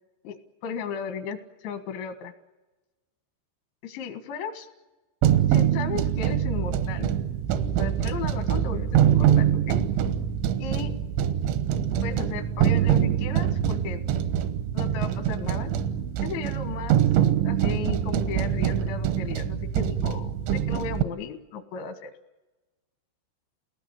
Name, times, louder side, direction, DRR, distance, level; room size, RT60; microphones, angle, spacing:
voice 1, 0.2-2.3 3.8-4.7 5.5-7.1 7.8-9.8 10.6-10.9 12.0-14.0 14.7-15.7 16.2-17.0 17.4-22.1, left 6 dB, 80° left, 8 dB, 3.9 m, -35 dB
sound 1, 5.2-21.0, right 10 dB, 85° right, 3.4 m, -24 dB
28.5 x 19.0 x 8.9 m, 1.2 s
omnidirectional pair, 5.3 m